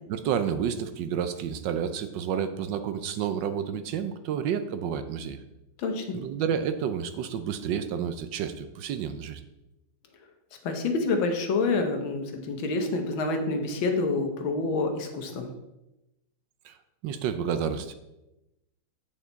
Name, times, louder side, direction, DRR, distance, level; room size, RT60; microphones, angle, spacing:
voice 1, 0.1-5.4 6.1-9.4 16.6-16.8 17.0-17.9, right 8 dB, 75° right, 9 dB, 1.2 m, -30 dB
voice 2, 5.8-6.2 10.6-15.5, left 3 dB, 85° left, 5 dB, 1.8 m, -27 dB
8.7 x 5.7 x 4.0 m, 0.95 s
omnidirectional pair, 2.1 m